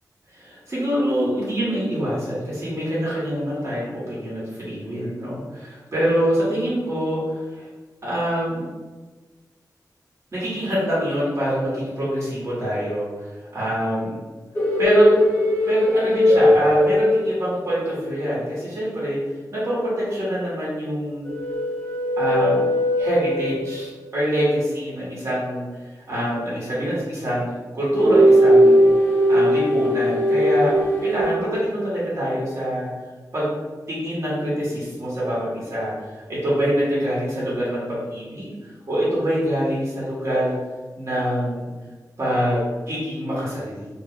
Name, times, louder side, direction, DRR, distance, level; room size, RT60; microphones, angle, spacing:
voice 1, 0.3-7.7 8.0-8.6 10.3-13.1 13.5-14.2 14.8-15.1 15.7-19.2 19.5-21.3 22.2-22.7 23.0-25.7 26.1-28.9 29.3-30.7 31.0-32.9 33.3-33.5 33.9-35.9 36.3-38.5 38.9-40.5 40.9-41.7 42.2-43.9, equal, 40° right, -8 dB, 1.1 m, -24 dB
sound 1, 14.5-17.7 21.3-23.9 27.9-31.8, equal, 30° left, 0.7 m, -19 dB
2.4 x 2.2 x 3.6 m, 1.3 s
wide cardioid pair, 120°, 7 cm